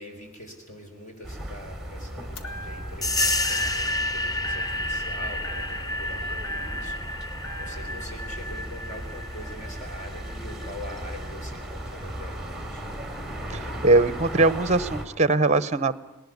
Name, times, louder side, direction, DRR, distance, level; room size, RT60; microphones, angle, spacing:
voice 1, 0.0-12.8, equal, 35° left, 3 dB, 4.7 m, -43 dB
sound 1, 1.2-15.1, right 1 dB, ahead, 2.7 m, -37 dB
sound 2, 2.4-3.1 3.4-4.1 4.4-5.1 5.4-7.1 7.4-8.1, equal, 85° left, 1.9 m, -41 dB
sound 3, 3.0-11.3, left 1 dB, 15° left, 0.8 m, -30 dB
voice 2, 13.5-16.0, right 3 dB, 30° right, 17 dB, 0.9 m, -21 dB
20.5 x 19.0 x 9.6 m, 0.91 s
head